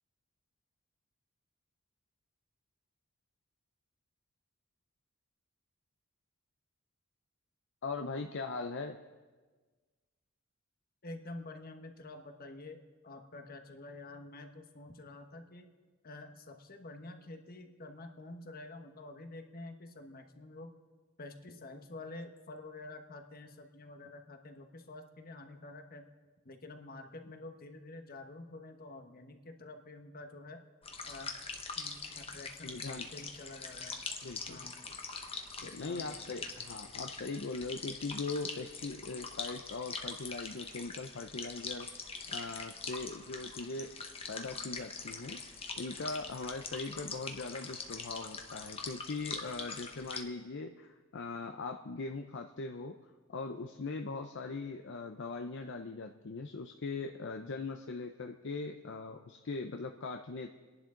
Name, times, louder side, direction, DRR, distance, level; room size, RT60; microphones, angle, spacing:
voice 1, 7.8-9.0 32.6-33.1 34.2-34.6 35.6-41.9 42.3-43.9 44.3-53.0 53.3-60.6, left 3 dB, 60° left, 4 dB, 0.6 m, -40 dB
voice 2, 11.0-15.7 16.0-20.7 21.2-26.1 26.4-30.6 31.0-31.3 31.7-33.9 34.4-34.8 35.6-36.5, left 2 dB, 45° left, 6 dB, 1.2 m, -48 dB
sound 1, 30.8-50.2, left 4 dB, 30° left, 1.2 m, -43 dB
29.0 x 11.0 x 3.8 m, 1.4 s
head